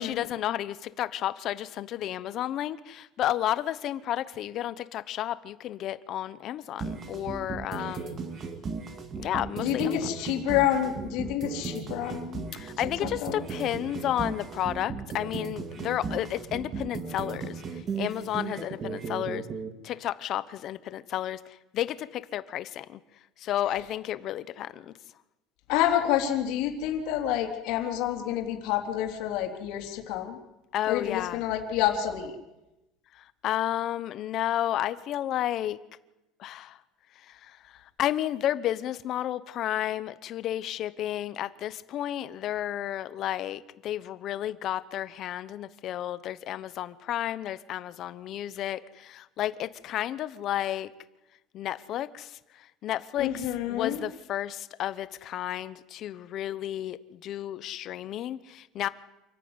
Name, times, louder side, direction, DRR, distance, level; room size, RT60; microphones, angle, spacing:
voice 1, 0.0-8.2 9.2-10.1 12.5-19.5 19.8-23.0 23.4-24.9 30.7-31.4 33.1-35.8 36.4-36.8 37.2-50.9 51.5-58.9, left 12 dB, 40° left, 15 dB, 1.0 m, -32 dB
sound 1, 6.8-19.7, right 5 dB, 25° right, 2.1 m, -36 dB
voice 2, 9.6-12.4 13.2-13.3 25.7-30.4 30.9-32.3 53.2-54.0, left 11 dB, 60° left, 3 dB, 3.6 m, -28 dB
27.5 x 14.5 x 9.8 m, 0.97 s
cardioid pair, 175°, 0 cm